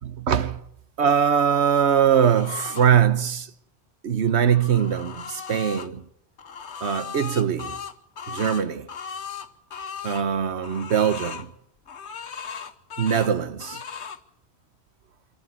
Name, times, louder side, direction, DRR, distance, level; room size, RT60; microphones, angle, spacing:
voice 1, 0.0-0.6 1.0-3.5 4.0-6.0 6.8-7.8 8.3-8.9 10.0-11.5 13.0-13.8, right 8 dB, 75° right, 1.3 m, -22 dB
sound 1, 2.1-2.9 4.3-5.9 6.4-10.2 10.6-11.5 11.9-13.3 13.6-14.2, left 6 dB, 85° left, 1.4 m, -37 dB
26.0 x 12.0 x 9.9 m
omnidirectional pair, 1.1 m